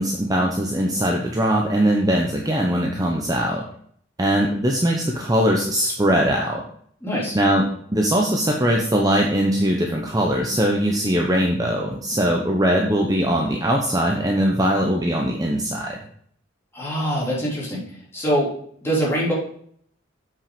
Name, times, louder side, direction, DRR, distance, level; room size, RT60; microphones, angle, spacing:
voice 1, 0.0-3.7 4.2-6.6 7.3-7.6 7.9-16.0, equal, 20° right, 0 dB, 0.9 m, -21 dB
voice 2, 7.0-7.4 16.7-17.8 18.1-18.5 18.8-19.3, equal, 10° left, -6 dB, 3.7 m, -23 dB
8.0 x 5.9 x 5.0 m, 0.62 s
head